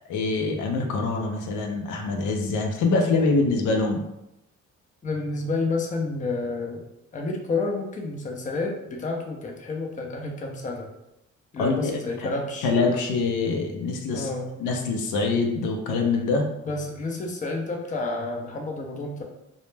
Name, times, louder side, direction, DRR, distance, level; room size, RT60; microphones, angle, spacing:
voice 1, 0.1-4.0 11.6-12.3 12.6-14.3 14.6-16.5, left 3 dB, 85° left, 3 dB, 0.5 m, -24 dB
voice 2, 5.0-6.9 7.1-10.9 11.5-12.7 14.1-14.5 16.7-19.2, left 3 dB, 25° left, 1 dB, 0.5 m, -30 dB
2.1 x 2.1 x 3.1 m, 0.85 s
cardioid pair, 90°, 30 cm